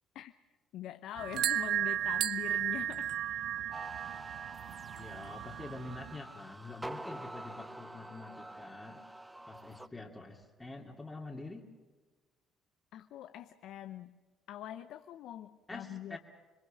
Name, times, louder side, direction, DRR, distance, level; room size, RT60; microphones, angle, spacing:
voice 1, 0.7-3.1 12.9-14.2 14.5-16.2, left 12 dB, 70° left, 10 dB, 0.7 m, -43 dB
sound 1, 1.2-6.2, right 11 dB, 70° right, 0.7 m, -35 dB
sound 2, 3.7-9.9, right 1 dB, 10° right, 0.8 m, -47 dB
voice 2, 4.9-9.0 9.5-11.7 15.7-16.2, left 2 dB, 20° left, -2 dB, 2.7 m, -46 dB
25.5 x 21.5 x 7.6 m, 1.3 s
hypercardioid pair, 60°, 0 cm